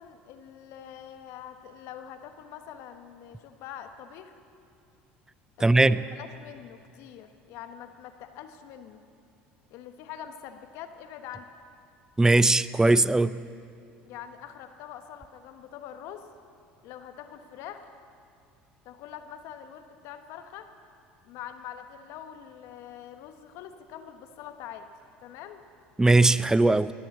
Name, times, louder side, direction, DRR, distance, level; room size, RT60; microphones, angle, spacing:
voice 1, 0.0-4.4 5.7-9.0 9.7-11.5 14.0-16.3 16.8-17.9 18.8-20.7 21.2-24.9 25.2-25.6, left 9 dB, 65° left, 1.1 m, -44 dB
voice 2, 5.6-6.0 12.2-13.4 26.0-26.9, right 2 dB, 10° right, 0.5 m, -19 dB
22.5 x 7.7 x 7.3 m
hypercardioid pair, 80°, 5 cm